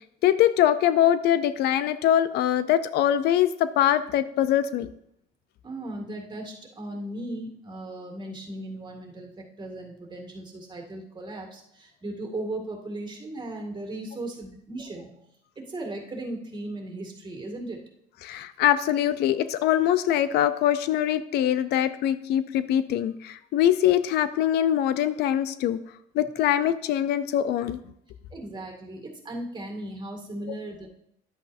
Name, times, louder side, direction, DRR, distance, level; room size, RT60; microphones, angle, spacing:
voice 1, 0.2-4.9 18.2-25.8 26.1-27.8, left 11 dB, 75° left, 13 dB, 0.5 m, -23 dB
voice 2, 5.6-15.2 15.6-17.8 28.3-30.9, right 1 dB, 25° right, 1 dB, 2.1 m, -37 dB
11.0 x 8.2 x 2.6 m, 0.74 s
cardioid pair, 110°, 17 cm